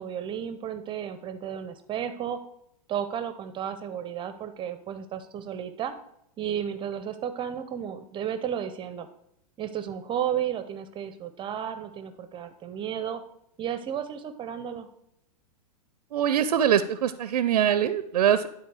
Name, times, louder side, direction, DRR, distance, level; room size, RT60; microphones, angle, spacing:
voice 1, 0.0-2.4 2.9-5.9 6.4-9.1 9.6-13.2 13.6-14.9, right 9 dB, 25° right, 10 dB, 0.7 m, -33 dB
voice 2, 16.1-18.5, right 9 dB, 80° right, 12 dB, 0.6 m, -23 dB
12.0 x 4.2 x 4.8 m, 0.78 s
hypercardioid pair, 120°, 20 cm